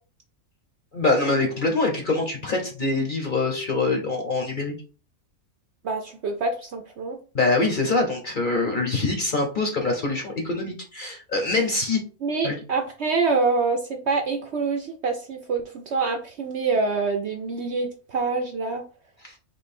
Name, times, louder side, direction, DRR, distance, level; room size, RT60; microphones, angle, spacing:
voice 1, 0.9-4.7 7.3-12.0 12.4-12.6 19.2-19.3, left 3 dB, 40° left, 2 dB, 0.8 m, -24 dB
voice 2, 5.8-7.2 12.2-18.8, right 4 dB, 60° right, 3 dB, 0.8 m, -26 dB
3.8 x 3.0 x 4.2 m, 0.37 s
omnidirectional pair, 1.6 m